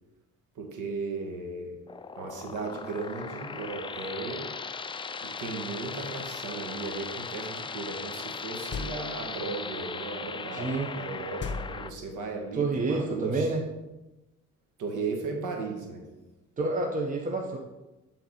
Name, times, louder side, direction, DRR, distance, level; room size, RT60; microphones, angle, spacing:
voice 1, 0.5-1.7 2.2-4.5 5.2-13.5 14.8-16.0, right 4 dB, 80° right, 2 dB, 1.6 m, -36 dB
sound 1, 1.9-11.9, left 5 dB, 20° left, 0.3 m, -38 dB
sound 2, 8.7-9.4 11.4-12.4, left 5 dB, 40° left, 0.7 m, -37 dB
voice 2, 10.5-10.9 12.5-13.6 16.6-17.6, right 3 dB, 25° right, 1 dB, 1.0 m, -28 dB
11.0 x 4.1 x 4.3 m, 1.0 s
cardioid pair, 90°, 30 cm